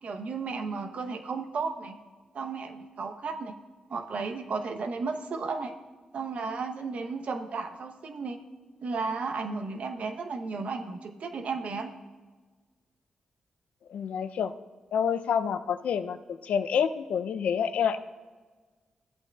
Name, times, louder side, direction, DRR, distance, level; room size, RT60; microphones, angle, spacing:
voice 1, 0.0-2.0 2.3-3.5 3.9-5.7 6.1-8.4 8.8-11.9, right 4 dB, 65° right, 6 dB, 0.8 m, -34 dB
voice 2, 13.9-14.5 14.9-18.0, left 7 dB, 80° left, 11 dB, 0.4 m, -28 dB
14.0 x 8.2 x 2.3 m, 1.4 s
supercardioid pair, 50°, 2 cm